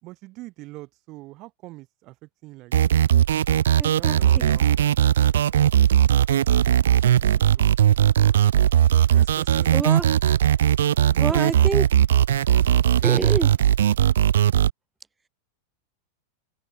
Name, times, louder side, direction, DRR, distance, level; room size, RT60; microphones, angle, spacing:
voice 1, 0.0-2.9 3.9-4.8 9.1-9.9 11.1-11.8, right 20 dB, 40° right, 4.2 m, -44 dB
sound 1, 2.7-14.7, right 10 dB, 60° right, 0.4 m, -19 dB
voice 2, 3.8-4.5 9.7-10.1 11.2-11.9 13.0-13.5, right 4 dB, 10° right, 1.9 m, -27 dB
open air
figure-of-eight pair, 90°, 0 cm